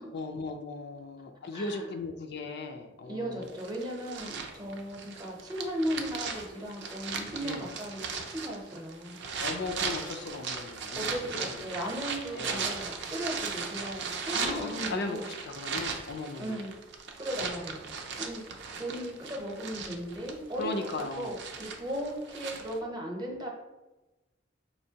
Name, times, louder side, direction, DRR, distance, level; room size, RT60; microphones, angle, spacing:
voice 1, 0.1-3.6 7.4-7.7 9.4-12.0 12.3-12.7 14.2-16.6 20.6-21.3, left 3 dB, 60° left, 4 dB, 0.4 m, -37 dB
voice 2, 1.5-1.9 3.1-9.2 11.0-15.3 16.4-16.8 17.2-17.8 18.2-18.4 18.8-20.7 21.1-23.5, equal, 20° right, -1 dB, 0.8 m, -36 dB
sound 1, 3.4-22.8, right 5 dB, 65° right, 0.5 m, -37 dB
4.4 x 3.0 x 2.8 m, 1.1 s
head